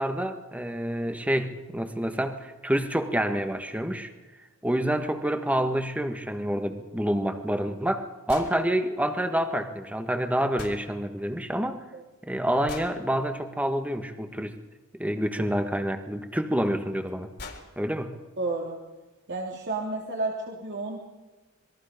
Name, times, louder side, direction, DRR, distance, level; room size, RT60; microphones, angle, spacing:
voice 1, 0.0-4.1 4.6-11.8 12.2-14.5 15.0-17.3 17.7-18.2, equal, 5° right, 6 dB, 1.7 m, -28 dB
sound 1, 8.3-8.6 10.6-10.8 12.7-13.0 15.2-15.3 16.6-16.7 17.1-17.2 17.4-17.7, left 4 dB, 55° left, 4.0 m, -40 dB
voice 2, 18.4-18.8 19.3-21.0, right 2 dB, 55° right, -1 dB, 3.1 m, -31 dB
27.0 x 22.0 x 5.3 m, 1.2 s
head